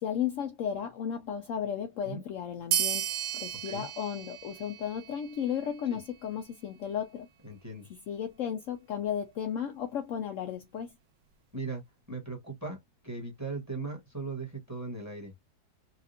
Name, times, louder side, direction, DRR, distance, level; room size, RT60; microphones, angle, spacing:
voice 1, 0.0-3.1 3.3-7.3 8.1-10.9, left 8 dB, 85° left, 0.6 m, -34 dB
sound 1, 2.7-5.7, right 10 dB, 80° right, 1.3 m, -34 dB
voice 2, 7.4-7.9 11.5-11.8 12.1-12.8 13.0-15.3, right 3 dB, 10° right, 0.9 m, -38 dB
4.1 x 2.3 x 2.6 m
omnidirectional pair, 1.9 m